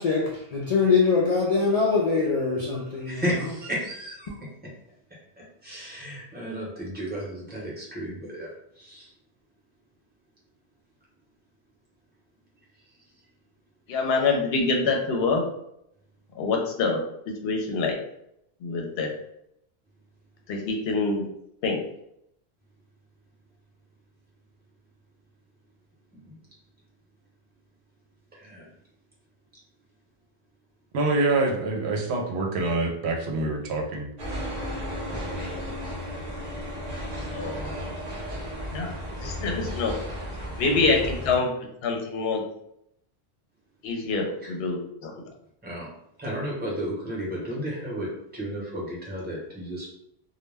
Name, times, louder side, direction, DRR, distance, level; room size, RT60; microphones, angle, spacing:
voice 1, 0.0-3.2, left 4 dB, 55° left, -4 dB, 0.4 m, -23 dB
voice 2, 3.1-4.4 5.6-8.5 8.8-9.1 26.2-26.4 28.3-28.6 44.4-44.6 45.6-45.9 46.2-49.9, equal, 10° right, -5 dB, 0.8 m, -33 dB
voice 3, 13.9-15.4 16.4-17.0 17.4-17.9 18.6-19.1 20.5-21.3 21.6-21.8 35.2-35.5 37.3-37.7 38.7-38.9 39.2-39.9 40.6-41.5 41.8-42.4 43.8-45.1, left 4 dB, 70° left, 1 dB, 0.8 m, -25 dB
voice 4, 30.9-34.1, right 2 dB, 80° right, 2 dB, 0.8 m, -25 dB
sound 1, 34.2-41.4, equal, 45° right, 0.7 m, -34 dB
2.2 x 2.1 x 3.3 m, 0.75 s
omnidirectional pair, 1.1 m